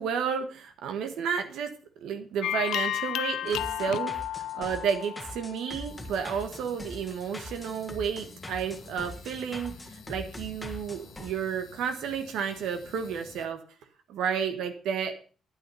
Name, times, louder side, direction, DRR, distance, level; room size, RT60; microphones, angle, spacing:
voice 1, 0.0-1.7 2.0-9.7 10.1-13.6 14.1-15.2, right 7 dB, 90° right, 6 dB, 1.3 m, -31 dB
sound 1, 2.4-5.9, left 12 dB, 85° left, 0.4 m, -32 dB
sound 2, 3.5-11.3, left 1 dB, 15° left, 1.5 m, -43 dB
sound 3, 5.9-13.5, left 5 dB, 60° left, 1.4 m, -51 dB
9.1 x 8.8 x 5.5 m, 0.39 s
cardioid pair, 105°, 0 cm